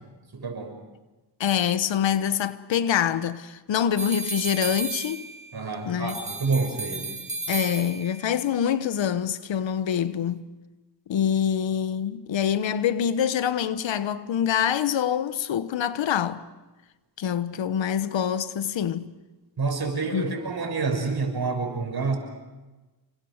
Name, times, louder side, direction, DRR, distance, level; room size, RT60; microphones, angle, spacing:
voice 1, 0.3-0.7 5.5-7.1 19.6-22.2, right 4 dB, 55° right, 6.5 m, -28 dB
voice 2, 1.4-5.3 5.8-6.2 7.5-10.5 11.1-16.4 17.2-19.1 20.1-20.3, left 9 dB, 75° left, 1.2 m, -25 dB
sound 1, 4.0-5.6 6.1-8.3, right 2 dB, 15° right, 4.4 m, -33 dB
28.0 x 24.5 x 6.5 m
cardioid pair, 60°, 45 cm